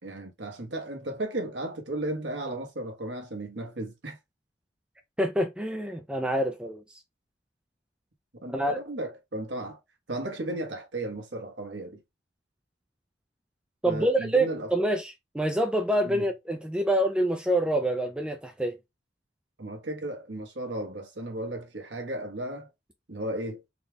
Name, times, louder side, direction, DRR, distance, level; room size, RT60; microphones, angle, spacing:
voice 1, 0.0-4.2 8.4-9.8 10.1-12.0 13.8-14.7 16.0-16.3 19.6-22.7 23.1-23.6, right 1 dB, 75° right, 1.3 m, -35 dB
voice 2, 5.2-7.0 8.5-8.8 13.8-18.8, right 1 dB, 5° right, 0.4 m, -26 dB
4.1 x 2.4 x 3.5 m
head